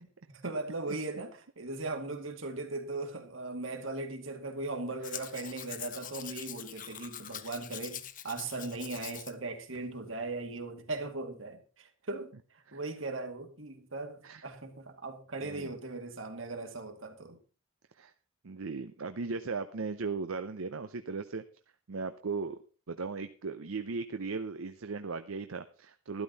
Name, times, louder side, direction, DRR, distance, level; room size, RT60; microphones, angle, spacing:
voice 1, 0.3-17.4, right 3 dB, 70° right, 2.2 m, -38 dB
Domestic sounds home sounds, 5.0-9.3 9.7-9.8, left 11 dB, 40° left, 0.7 m, -44 dB
voice 2, 18.4-21.4 21.9-22.6 22.9-26.2, right 4 dB, 85° right, 0.7 m, -37 dB
13.0 x 12.5 x 4.1 m
head